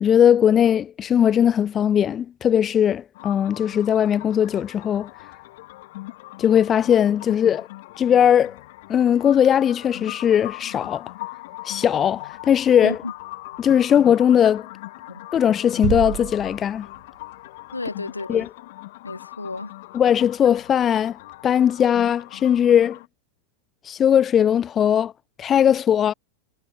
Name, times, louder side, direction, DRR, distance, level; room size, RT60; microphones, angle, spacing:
voice 1, 0.0-5.1 6.4-7.7 8.0-8.6 8.9-11.1 11.6-13.0 13.6-14.7 15.3-16.9 18.3-18.5 19.9-21.2 21.4-23.0 23.8-25.1 25.4-26.1, left 9 dB, 25° left, 0.4 m, -19 dB
sound 1, 3.1-23.1, left 19 dB, 50° left, 2.8 m, -40 dB
voice 2, 12.8-13.1 15.1-15.4 17.7-18.5 19.0-19.7, left 3 dB, 80° left, 5.5 m, -32 dB
sound 2, 15.8-17.4, right 28 dB, 45° right, 0.9 m, -30 dB
figure-of-eight pair, 90°, 0 cm